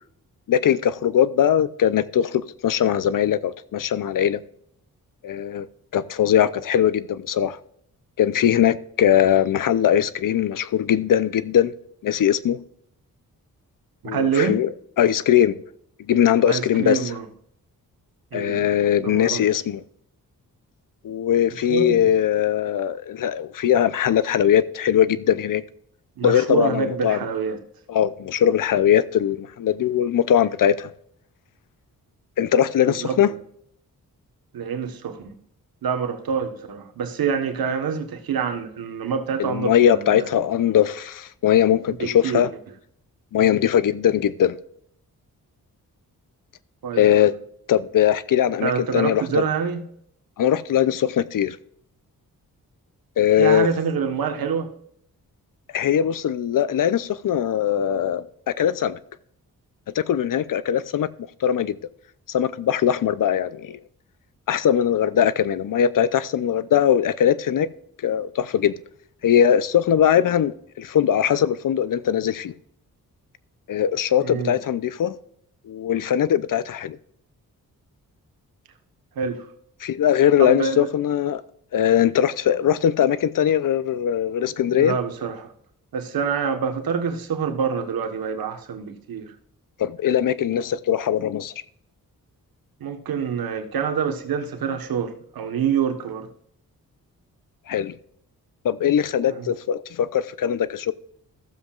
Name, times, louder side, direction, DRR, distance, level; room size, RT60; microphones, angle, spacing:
voice 1, 0.5-4.4 5.2-5.7 5.9-7.6 8.2-11.7 12.0-12.6 14.0-14.7 15.0-15.6 16.1-17.1 18.3-19.8 21.0-25.6 26.2-27.2 27.9-30.9 32.4-33.3 39.4-42.5 43.3-44.6 47.0-47.3 47.7-49.4 50.4-51.6 53.2-53.7 55.7-59.0 59.9-61.1 61.4-61.8 62.3-63.8 64.5-67.7 68.0-68.7 69.2-72.5 73.7-75.2 75.7-77.0 79.8-81.4 81.7-85.0 89.8-91.5 97.7-98.0 98.6-100.9, left 9 dB, 65° left, 0.6 m, -20 dB
voice 2, 14.0-14.6 16.5-17.3 18.3-18.6 19.0-19.4 21.7-22.1 26.2-27.6 32.9-33.2 34.5-35.3 35.8-40.3 41.9-42.4 46.8-47.3 48.6-49.8 53.4-54.7 74.2-74.6 79.1-79.5 80.4-80.9 84.8-85.5 85.9-89.3 92.8-96.3 99.3-99.5, right 6 dB, 85° right, 1.4 m, -26 dB
15.0 x 7.4 x 2.5 m
cardioid pair, 70°, 35 cm